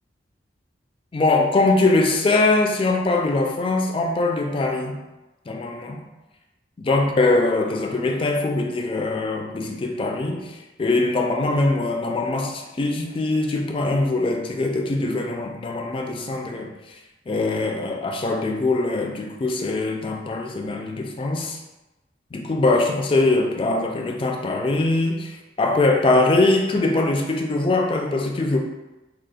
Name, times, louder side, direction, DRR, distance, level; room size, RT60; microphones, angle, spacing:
voice 1, 1.1-5.0 5.5-6.0 6.8-16.9 17.3-21.6 22.3-28.6, left 2 dB, 30° left, 2 dB, 0.3 m, -22 dB
3.8 x 2.3 x 2.4 m, 1.1 s
head